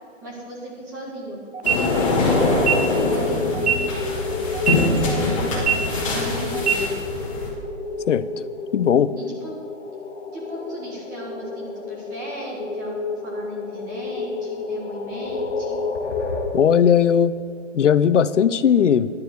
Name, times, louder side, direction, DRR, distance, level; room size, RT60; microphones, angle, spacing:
voice 1, 0.2-1.4 1.6-3.9 4.7-6.9 9.2-9.5 10.3-15.8, right 1 dB, 15° right, -5 dB, 1.8 m, -36 dB
sound 1, 1.5-1.7 2.5-2.7 3.5-3.7 4.5-4.7 5.5-5.7 6.5-6.7, right 8 dB, 60° right, 1.3 m, -21 dB
sound 2, 1.6-7.5, left 2 dB, 25° left, 2.2 m, -23 dB
sound 3, 2.2-16.5, left 4 dB, 60° left, 2.9 m, -30 dB
voice 2, 8.7-9.1 16.5-17.3 17.7-19.1, left 8 dB, 75° left, 16 dB, 0.7 m, -17 dB
11.0 x 6.9 x 8.1 m, 2.2 s
hypercardioid pair, 175°, 37 cm